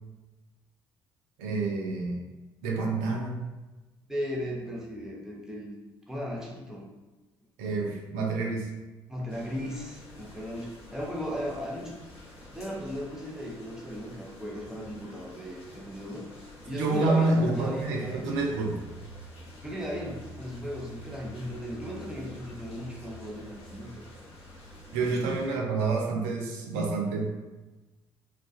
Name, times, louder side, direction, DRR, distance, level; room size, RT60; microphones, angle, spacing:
voice 1, 1.4-2.2 2.6-3.4 7.6-8.7 16.7-18.8 24.9-27.3, right 3 dB, 70° right, 0 dB, 0.5 m, -28 dB
voice 2, 4.1-5.7 6.1-6.9 9.1-12.0 12.3-18.4 19.6-24.0 25.0-25.5, equal, 5° right, -3 dB, 0.7 m, -36 dB
sound 1, 9.3-25.5, left 1 dB, 60° left, 0.8 m, -48 dB
2.3 x 2.3 x 2.5 m, 1.2 s
figure-of-eight pair, 50°, 12 cm